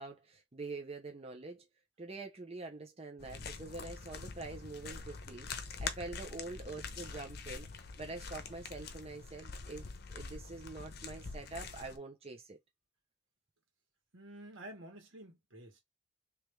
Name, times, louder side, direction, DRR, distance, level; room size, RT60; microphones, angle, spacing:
voice 1, 0.0-1.6 2.0-7.7 8.0-9.8 10.1-12.6, right 3 dB, 30° right, 0.7 m, -45 dB
sound 1, 3.2-12.0, left 4 dB, 55° left, 0.7 m, -45 dB
voice 2, 14.1-15.8, right 1 dB, 90° right, 1.6 m, -50 dB
3.4 x 3.0 x 3.2 m
head